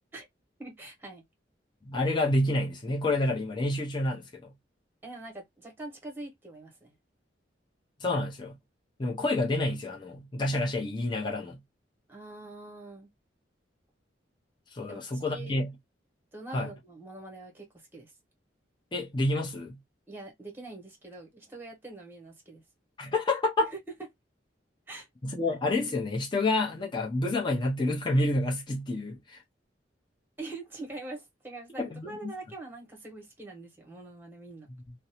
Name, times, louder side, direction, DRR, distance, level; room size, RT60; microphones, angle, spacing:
voice 1, 0.6-1.2 5.0-6.9 12.1-13.1 14.9-15.6 16.3-18.1 20.1-22.6 23.6-23.8 24.9-25.1 30.4-34.7, right 2 dB, 10° right, 1.0 m, -44 dB
voice 2, 1.9-4.5 8.0-8.5 9.0-11.6 14.7-15.7 16.5-16.7 18.9-19.8 23.0-23.7 25.2-29.4 31.8-32.3, left 2 dB, 25° left, 0.5 m, -28 dB
2.5 x 2.0 x 2.8 m
head